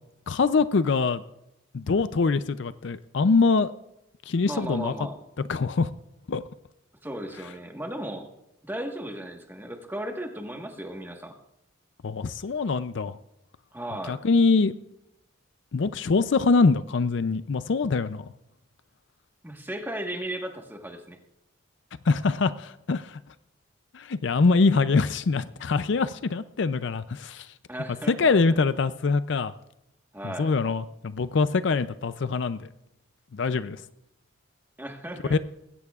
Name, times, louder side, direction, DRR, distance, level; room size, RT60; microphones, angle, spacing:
voice 1, 0.3-1.2 1.7-3.7 4.3-4.9 5.5-5.9 6.3-6.4 12.0-13.2 14.1-14.7 15.7-18.3 22.1-23.2 23.9-27.5 28.1-29.5 30.2-32.7 33.3-33.8 35.3-35.4, left 4 dB, 60° left, 13 dB, 0.5 m, -24 dB
voice 2, 4.5-5.2 7.0-8.3 8.6-11.3 13.7-14.2 19.4-21.2 27.7-28.3 30.1-30.5 34.8-35.4, right 1 dB, 10° right, 3 dB, 1.4 m, -35 dB
20.0 x 17.0 x 2.4 m, 0.87 s
head